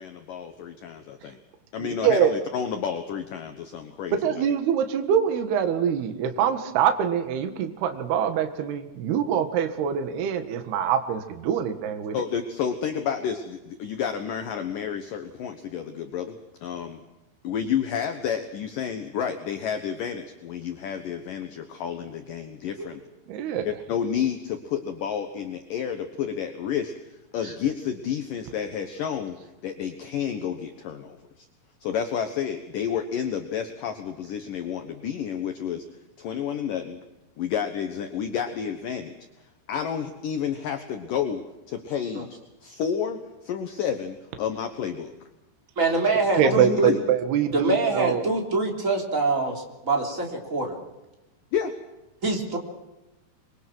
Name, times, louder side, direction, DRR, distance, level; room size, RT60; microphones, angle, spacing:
voice 1, 0.0-1.4 1.7-4.4 12.1-17.0 17.4-23.0 23.6-31.5 31.8-35.9 36.2-37.0 37.4-39.1 39.7-45.1 46.4-47.0 51.5-51.8, left 8 dB, 70° left, 7 dB, 2.1 m, -30 dB
voice 2, 1.8-2.3 4.2-12.2 23.3-23.7 46.4-48.2, right 8 dB, 65° right, 7 dB, 3.3 m, -24 dB
voice 3, 45.8-46.9 47.5-50.8 52.2-52.6, right 3 dB, 20° right, 2 dB, 3.1 m, -25 dB
27.0 x 23.0 x 6.3 m, 1.0 s
omnidirectional pair, 5.7 m